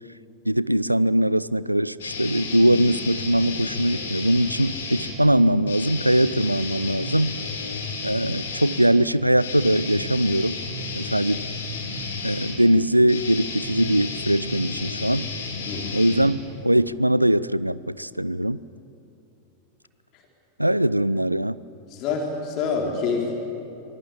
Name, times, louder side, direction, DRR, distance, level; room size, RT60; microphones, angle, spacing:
voice 1, 0.5-7.4 8.0-10.6 10.9-11.4 12.2-15.3 15.9-18.6 20.6-21.6, right 1 dB, 90° right, 19 dB, 0.5 m, -21 dB
sound 1, 2.0-5.2 5.6-16.8, left 4 dB, 65° left, 4.1 m, -32 dB
voice 2, 15.7-16.0 20.1-20.2 21.9-23.3, left 5 dB, 40° left, 0 dB, 3.8 m, -27 dB
24.5 x 21.0 x 8.4 m, 2.9 s
figure-of-eight pair, 90°, 0 cm